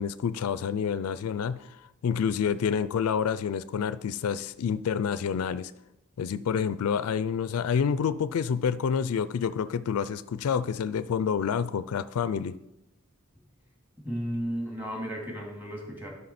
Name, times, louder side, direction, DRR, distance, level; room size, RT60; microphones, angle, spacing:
voice 1, 0.0-1.8 2.0-5.7 6.2-12.5, left 7 dB, 80° left, 15 dB, 0.4 m, -28 dB
voice 2, 14.0-16.1, equal, 10° right, -1 dB, 2.2 m, -34 dB
12.0 x 5.4 x 4.2 m, 0.90 s
head